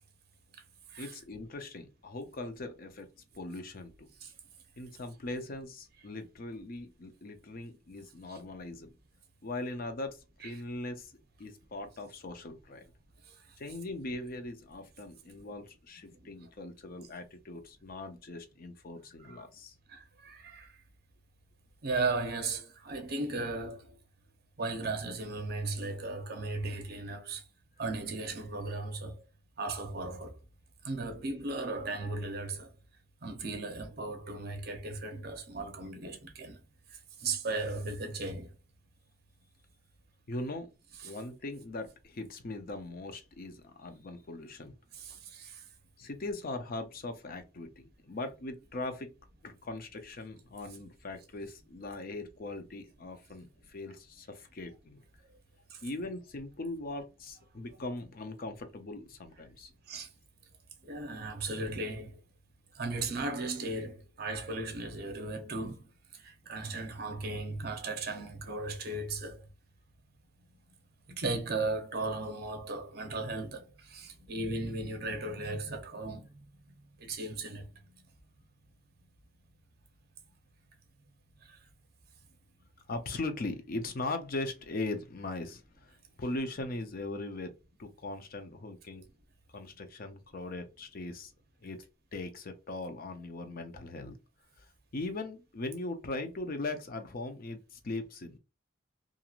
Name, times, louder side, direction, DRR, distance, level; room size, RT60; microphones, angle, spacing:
voice 1, 1.0-3.1 3.3-4.1 4.8-8.9 9.4-11.1 11.4-12.8 13.6-19.7 40.3-40.7 41.0-44.7 46.0-49.1 49.4-55.0 55.8-59.7 82.9-87.5 87.8-89.1 89.5-91.3 91.6-91.8 92.1-94.1 94.6-98.4, left 2 dB, 50° left, 0.5 m, -40 dB
voice 2, 19.9-20.7 21.8-24.0 24.6-27.4 27.8-29.2 29.6-30.4 30.8-32.7 33.2-36.6 37.2-38.5 41.0-41.2 44.9-45.6 55.7-55.8 59.9-60.1 60.8-62.2 62.7-65.9 66.2-69.5 71.1-76.4 77.0-77.7 81.5-81.6, right 3 dB, 55° right, 0.7 m, -36 dB
2.9 x 2.5 x 2.4 m
head